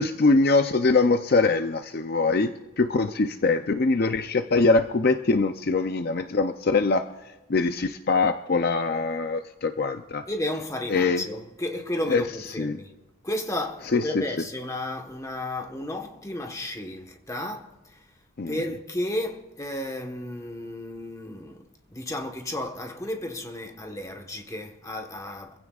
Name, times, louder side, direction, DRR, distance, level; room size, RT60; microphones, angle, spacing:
voice 1, 0.0-7.0 7.5-10.2 10.9-11.2 12.1-12.2 12.6-12.8 13.9-14.2 18.4-18.6, left 3 dB, 45° left, 0.5 m, -23 dB
voice 2, 10.3-12.9 13.2-18.0 18.5-21.6 21.9-25.6, left 1 dB, 15° left, 1.2 m, -33 dB
25.5 x 15.5 x 2.4 m
head